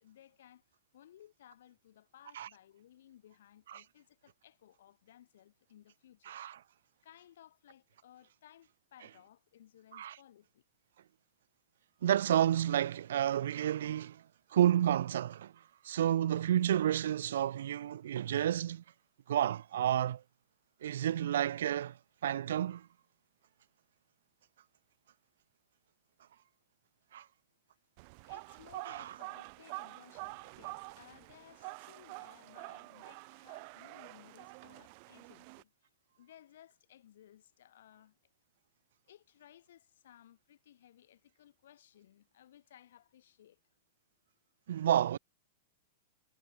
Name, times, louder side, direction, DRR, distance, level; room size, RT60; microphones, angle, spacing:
voice 1, 0.0-0.6 0.9-6.4 7.0-10.5 28.2-35.7 36.2-38.1 39.1-43.6, left 11 dB, 75° left, 2.4 m, -60 dB
voice 2, 6.3-6.6 9.9-10.2 12.0-14.2 14.5-15.5 15.8-18.8 19.3-20.2 20.8-21.9 22.2-22.9 27.1-27.2 28.9-29.0 44.7-45.2, right 11 dB, 80° right, 0.6 m, -30 dB
sound 1, 28.0-35.6, right 33 dB, 40° right, 0.9 m, -47 dB
supercardioid pair, 170°, 0 cm